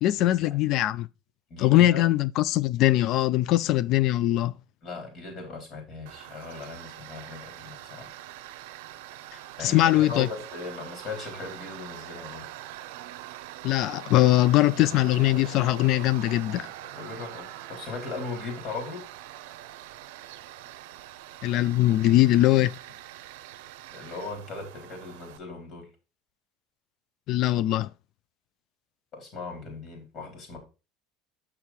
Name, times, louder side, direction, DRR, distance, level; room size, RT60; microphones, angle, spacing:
voice 1, 0.0-1.1 1.6-4.5 9.6-10.3 13.6-16.7 21.4-22.8 27.3-27.9, left 15 dB, 55° left, 0.3 m, -21 dB
voice 2, 1.5-2.1 4.8-8.1 9.6-12.5 16.9-19.0 23.9-25.9 29.1-30.6, left 3 dB, 40° left, 4.2 m, -38 dB
Tools, 6.1-25.4, right 14 dB, 85° right, 0.6 m, -43 dB
6.8 x 5.7 x 4.4 m
supercardioid pair, 130°, 0 cm